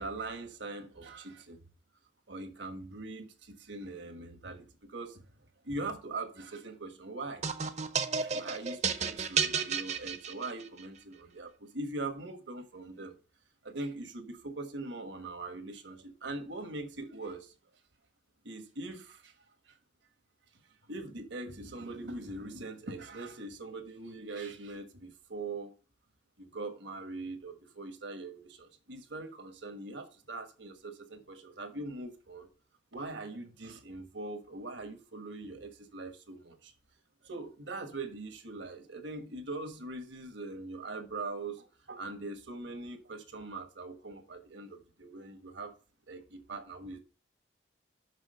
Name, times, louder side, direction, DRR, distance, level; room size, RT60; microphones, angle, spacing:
voice 1, 0.0-1.6 2.3-5.2 5.6-7.4 8.2-13.2 13.6-17.5 18.4-19.3 20.9-25.7 26.4-32.5 32.9-36.7 37.2-45.8 46.1-47.0, right 2 dB, 75° right, 1.4 m, -42 dB
sound 1, 7.4-10.8, right 6 dB, 35° right, 0.7 m, -32 dB
6.2 x 6.1 x 6.4 m
head